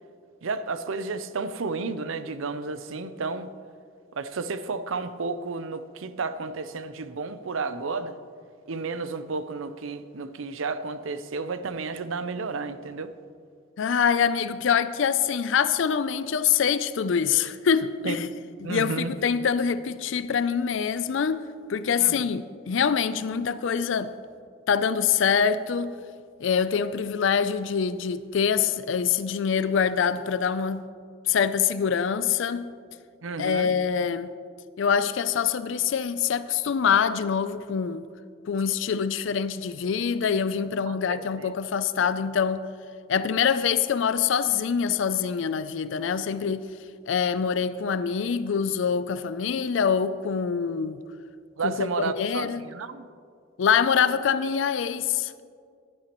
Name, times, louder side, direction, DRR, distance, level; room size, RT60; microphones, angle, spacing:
voice 1, 0.4-3.5 4.2-8.2 8.7-13.1 18.0-18.2 18.6-19.1 22.0-22.4 33.2-33.7 40.9-41.5 51.6-53.1, right 4 dB, 75° right, 0.6 m, -32 dB
voice 2, 13.8-18.3 18.6-21.4 21.7-24.1 24.7-26.0 26.4-30.8 31.3-32.7 33.4-34.3 34.8-38.1 38.5-42.7 43.1-46.7 47.1-51.0 51.6-52.7 53.6-55.3, left 7 dB, 65° left, 0.4 m, -25 dB
15.0 x 11.5 x 3.0 m
head